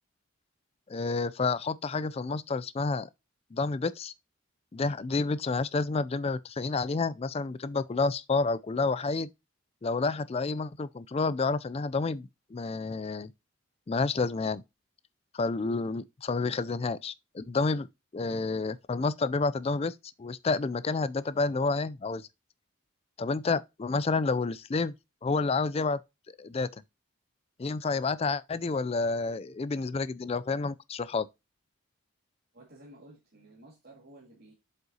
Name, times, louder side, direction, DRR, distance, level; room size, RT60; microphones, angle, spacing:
voice 1, 0.9-3.1 3.5-4.1 4.7-9.3 9.8-13.3 13.9-14.6 15.3-17.9 18.1-22.3 23.2-24.9 25.2-26.0 26.4-26.8 27.6-31.3, left 3 dB, 30° left, 0.3 m, -29 dB
voice 2, 32.5-34.5, right 1 dB, 50° right, 2.2 m, -53 dB
7.6 x 5.6 x 2.8 m
head